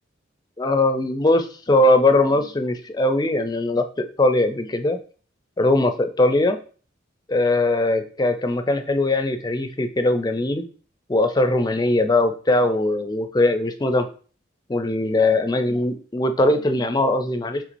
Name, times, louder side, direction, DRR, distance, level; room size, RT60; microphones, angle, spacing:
voice 1, 0.6-5.0 5.6-6.6 7.3-10.6 11.1-14.1 14.7-17.6, left 2 dB, 20° left, 8 dB, 0.4 m, -20 dB
5.8 x 3.5 x 2.6 m, 0.40 s
head